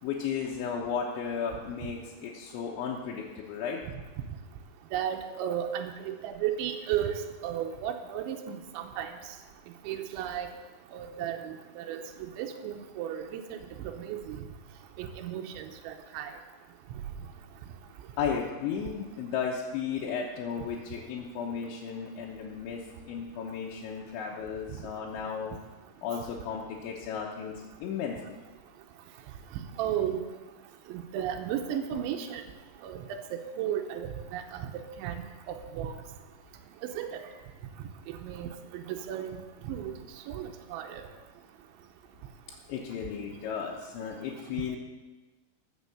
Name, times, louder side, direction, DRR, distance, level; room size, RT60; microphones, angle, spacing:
voice 1, 0.0-3.8 18.2-25.5 26.0-28.4 42.7-44.8, left 7 dB, 80° left, -2 dB, 3.3 m, -34 dB
voice 2, 4.9-9.1 9.9-10.5 10.9-12.0 12.4-14.4 15.0-16.3 29.8-30.2 30.9-32.4 32.8-34.7 35.0-35.2 35.5-35.9 36.8-37.2 38.1-39.4 39.7-39.9 40.3-41.0, right 10 dB, 90° right, 5 dB, 3.1 m, -34 dB
14.5 x 7.6 x 7.0 m, 1.2 s
omnidirectional pair, 5.4 m